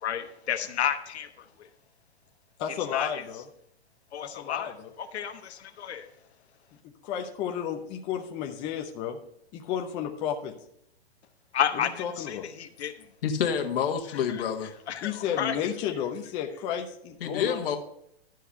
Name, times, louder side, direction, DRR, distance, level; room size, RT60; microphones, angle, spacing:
voice 1, 0.0-1.7 2.9-3.2 4.1-6.1 11.5-13.1 14.1-14.4 14.9-15.6, left 9 dB, 80° left, 7 dB, 1.1 m, -32 dB
voice 2, 2.6-3.4 4.2-4.9 6.8-9.2 9.5-10.5 12.0-12.5 15.0-17.8, left 9 dB, 15° left, 3 dB, 0.4 m, -32 dB
voice 3, 13.2-14.7 17.2-17.8, left 7 dB, 60° left, 5 dB, 1.4 m, -28 dB
11.5 x 4.6 x 5.5 m, 0.75 s
hypercardioid pair, 145°, 32 cm